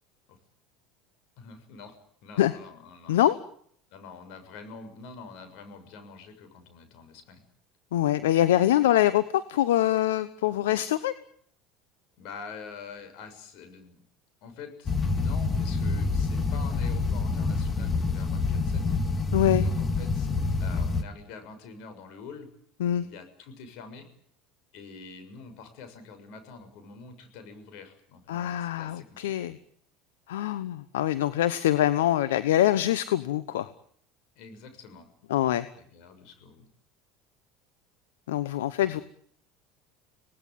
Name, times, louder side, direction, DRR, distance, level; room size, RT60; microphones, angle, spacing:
voice 1, 1.4-2.0 2.2-3.2 3.9-7.4 12.2-14.0 14.4-19.0 19.6-20.3 20.6-22.5 23.0-24.1 24.7-29.5 34.3-36.7 38.7-39.0, left 5 dB, 65° left, 8 dB, 6.9 m, -46 dB
voice 2, 7.9-11.1 19.3-19.7 22.8-23.1 28.3-29.6 30.3-33.7 35.3-35.7 38.3-39.0, left 13 dB, 85° left, 14 dB, 1.0 m, -24 dB
sound 1, 14.9-21.0, left 3 dB, 25° left, 2.3 m, -27 dB
26.5 x 19.0 x 9.3 m, 0.65 s
hypercardioid pair, 90°, 0 cm